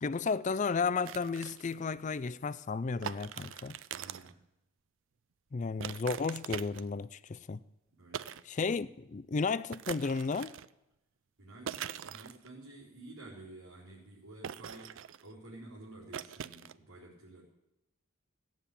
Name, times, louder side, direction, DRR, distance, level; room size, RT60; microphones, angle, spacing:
voice 1, 0.0-3.8 5.5-7.6 8.5-10.5, left 4 dB, 35° left, 0.4 m, -33 dB
sound 1, 1.0-1.8 3.0-4.3 5.8-7.0 8.1-8.4 8.7-8.8 9.7-10.7 11.7-12.5 14.4-15.3 16.1-16.7, right 8 dB, 60° right, 0.4 m, -42 dB
voice 2, 3.9-4.4 8.0-8.6 11.4-15.0 15.2-17.4, right 2 dB, 90° right, 4.1 m, -51 dB
16.0 x 7.4 x 8.4 m
head